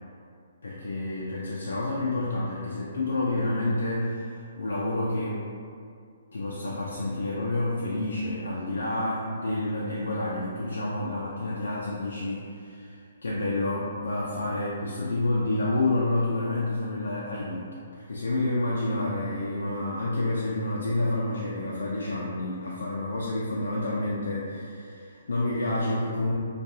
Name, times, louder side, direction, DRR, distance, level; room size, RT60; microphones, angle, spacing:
voice 1, 0.6-5.4 6.3-17.7 18.1-26.3, left 2 dB, 80° left, -6 dB, 0.4 m, -29 dB
2.4 x 2.2 x 2.6 m, 2.3 s
hypercardioid pair, 135°, 0 cm